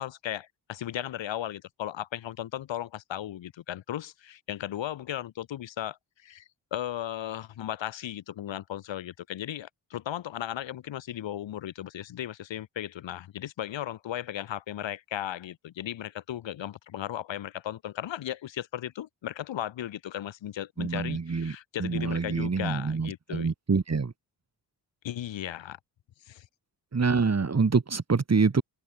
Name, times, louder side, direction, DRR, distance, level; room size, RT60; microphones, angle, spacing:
voice 1, 0.0-6.4 6.7-23.5 25.0-25.8 26.3-26.5, left 12 dB, 85° left, 5.7 m, -36 dB
voice 2, 20.8-21.5 21.8-24.1 26.9-28.6, right 4 dB, 35° right, 3.2 m, -26 dB
cardioid pair, 60°, 44 cm